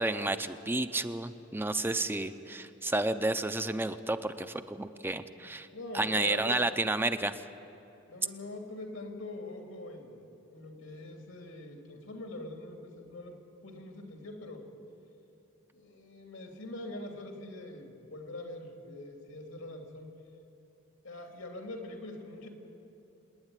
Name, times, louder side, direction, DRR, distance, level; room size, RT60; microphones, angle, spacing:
voice 1, 0.0-5.7 5.9-7.4, right 2 dB, 10° right, 10 dB, 0.6 m, -31 dB
voice 2, 5.7-6.8 8.1-10.2 10.5-14.7 15.7-20.1 21.0-22.5, left 2 dB, 85° left, 2 dB, 2.9 m, -43 dB
27.0 x 9.8 x 9.8 m, 2.9 s
head